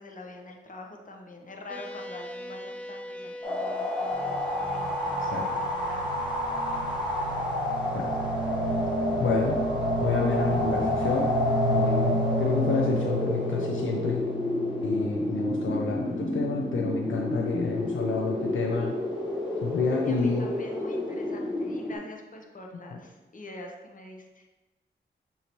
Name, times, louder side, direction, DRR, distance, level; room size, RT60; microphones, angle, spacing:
voice 1, 0.0-6.1 17.7-17.8 20.0-24.5, left 2 dB, 40° left, 1 dB, 0.8 m, -45 dB
sound 1, 1.7-10.4, left 1 dB, 5° left, 0.5 m, -43 dB
sound 2, 3.4-22.0, left 1 dB, 20° left, 1.2 m, -31 dB
sound 3, 4.1-16.4, equal, 70° right, 0.8 m, -30 dB
voice 2, 9.2-9.6 10.0-11.3 11.7-14.2 14.8-19.0 19.6-20.5, left 4 dB, 75° left, 0 dB, 0.5 m, -29 dB
6.4 x 2.8 x 2.9 m, 1.2 s
cardioid pair, 60°, 20 cm